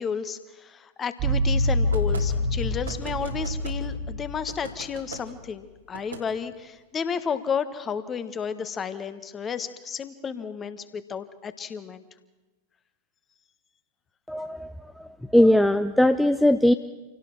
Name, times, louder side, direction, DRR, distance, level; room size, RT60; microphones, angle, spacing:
voice 1, 0.0-12.0, left 6 dB, 20° left, 12 dB, 1.4 m, -32 dB
sound 1, 1.2-4.8 5.1-5.2, left 1 dB, 35° right, 1.3 m, -26 dB
sound 2, 1.9-2.3 2.8-3.8 4.5-5.2 5.9-6.2, right 4 dB, 75° right, 2.6 m, -39 dB
voice 2, 14.3-16.7, left 1 dB, ahead, 9 dB, 0.6 m, -20 dB
27.0 x 17.5 x 6.1 m, 1.2 s
figure-of-eight pair, 90°, 0 cm